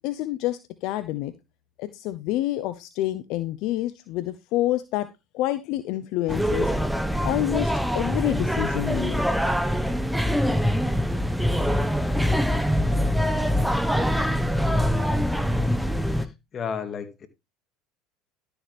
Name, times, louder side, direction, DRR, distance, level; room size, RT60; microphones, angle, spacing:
voice 1, 0.0-1.3 1.8-5.1 5.3-6.7 7.2-9.2, left 15 dB, 65° left, 0.7 m, -28 dB
sound 1, 6.3-16.3, equal, ahead, 1.2 m, -24 dB
voice 2, 16.5-17.3, left 6 dB, 40° left, 2.0 m, -31 dB
12.5 x 7.0 x 3.4 m
hypercardioid pair, 75°, 0 cm